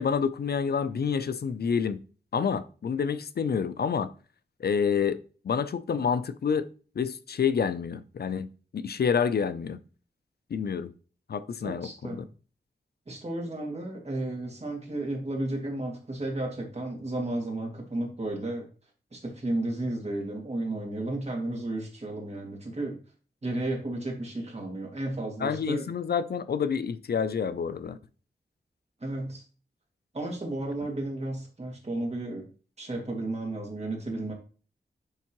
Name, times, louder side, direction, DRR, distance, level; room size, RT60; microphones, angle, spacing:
voice 1, 0.0-2.0 2.3-4.1 4.6-6.7 7.0-9.8 10.5-10.9 11.3-11.9 12.2-12.3 25.4-28.0, left 6 dB, 70° left, 0.5 m, -28 dB
voice 2, 11.6-12.2 13.1-18.7 19.1-23.0 23.4-25.9 29.0-29.4 30.1-32.5 32.8-34.3, right 2 dB, 40° right, 2.2 m, -33 dB
10.5 x 3.6 x 3.0 m
wide cardioid pair, 105°, 17 cm